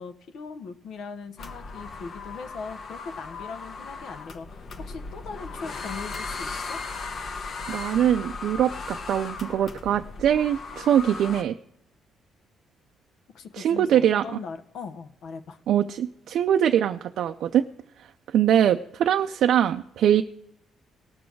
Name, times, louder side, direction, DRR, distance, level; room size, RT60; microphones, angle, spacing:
voice 1, 0.0-6.8 13.3-15.6, left 5 dB, 75° left, 8 dB, 1.0 m, -40 dB
sound 1, 1.4-11.4, left 4 dB, 55° left, 1.0 m, -37 dB
voice 2, 7.7-11.6 13.6-14.2 15.7-17.6 18.3-20.2, right 10 dB, 75° right, 6 dB, 0.4 m, -22 dB
18.0 x 6.3 x 4.6 m, 0.77 s
cardioid pair, 90°, 0 cm